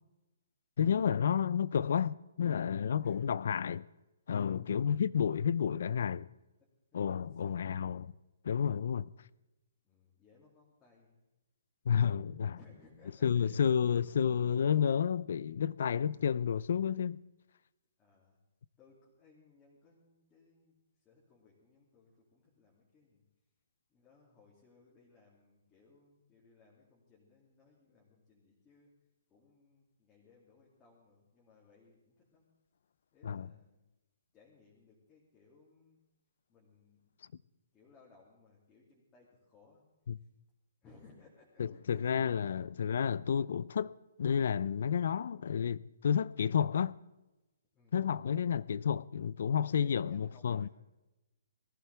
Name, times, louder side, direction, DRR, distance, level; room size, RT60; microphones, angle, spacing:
voice 1, 0.8-3.8 4.3-6.3 6.9-8.1 8.4-9.1 11.9-12.6 13.2-17.2 33.2-33.5 40.1-40.2 41.6-43.9 44.2-46.9 47.9-50.7, left 7 dB, 55° left, 0.4 m, -31 dB
voice 2, 3.0-3.3 4.7-5.0 6.6-8.1 9.8-11.2 12.6-14.0 18.0-18.4 18.8-23.2 23.9-28.9 29.3-32.5 33.1-33.9 34.3-36.0 36.5-37.2 37.7-39.8 40.2-40.3 40.8-43.3 47.7-48.1 49.8-50.7, left 4 dB, 15° left, 2.5 m, -64 dB
20.0 x 15.0 x 3.4 m
hypercardioid pair, 175°, 0 cm